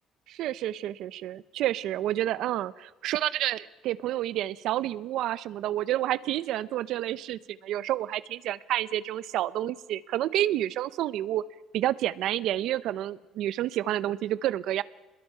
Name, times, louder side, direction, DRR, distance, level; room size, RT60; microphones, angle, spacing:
voice 1, 0.3-11.4 11.7-14.8, right 13 dB, 60° right, 17 dB, 0.6 m, -29 dB
28.0 x 21.5 x 5.6 m, 1.1 s
cardioid pair, 170°, 0 cm